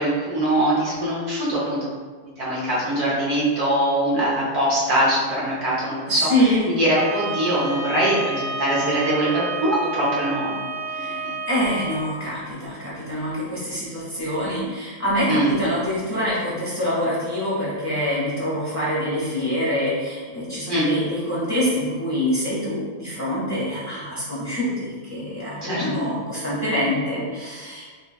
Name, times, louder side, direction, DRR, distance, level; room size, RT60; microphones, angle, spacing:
voice 1, 0.0-1.8 2.4-6.3 6.8-10.6 11.0-11.3 15.3-15.5 20.7-20.9 25.6-25.8, right 1 dB, 55° right, -6 dB, 1.2 m, -22 dB
voice 2, 6.1-6.7 10.9-27.8, equal, 10° left, -9 dB, 1.0 m, -25 dB
Bowed string instrument, 6.8-12.1, right 3 dB, 75° right, 1.8 m, -31 dB
6.7 x 3.0 x 2.3 m, 1.5 s
omnidirectional pair, 2.4 m